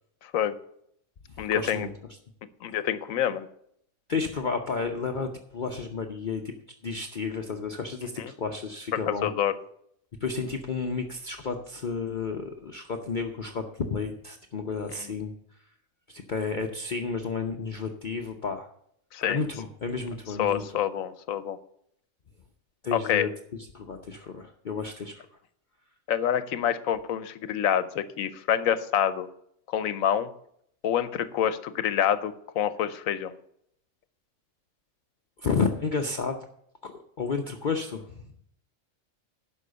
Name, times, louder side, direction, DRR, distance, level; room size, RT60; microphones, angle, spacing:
voice 1, 0.2-0.6 1.4-1.9 2.6-3.5 8.2-8.3 9.1-9.5 19.1-19.4 20.4-21.6 22.9-23.3 26.1-29.3 29.7-30.3 30.8-33.3, left 9 dB, 80° left, 13 dB, 1.1 m, -27 dB
voice 2, 1.4-1.9 4.1-6.5 6.8-9.3 10.2-15.3 16.1-18.7 19.2-20.6 22.8-25.3 35.4-36.4 36.8-36.9 37.2-38.3, left 4 dB, 45° left, 3 dB, 0.8 m, -31 dB
11.5 x 5.6 x 6.7 m, 0.70 s
omnidirectional pair, 1.4 m